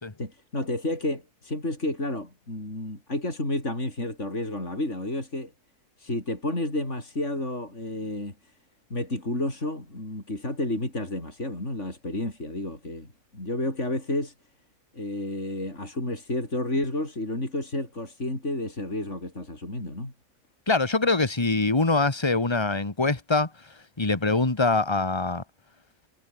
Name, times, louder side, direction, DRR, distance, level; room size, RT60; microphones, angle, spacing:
voice 1, 0.2-5.5 6.0-8.5 8.9-14.3 14.9-20.1, left 1 dB, 55° left, 7.3 m, -31 dB
voice 2, 20.7-25.4, left 3 dB, 20° left, 1.8 m, -24 dB
omnidirectional pair, 1.4 m